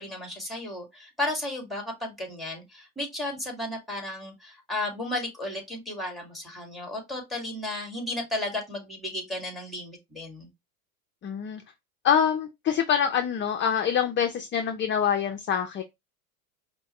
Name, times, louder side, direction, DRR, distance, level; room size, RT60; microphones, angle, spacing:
voice 1, 0.0-10.5, left 1 dB, ahead, 1.9 m, -34 dB
voice 2, 11.2-11.6 12.0-15.8, left 8 dB, 25° left, 0.5 m, -25 dB
5.1 x 2.2 x 2.9 m
hypercardioid pair, 100°, 44 cm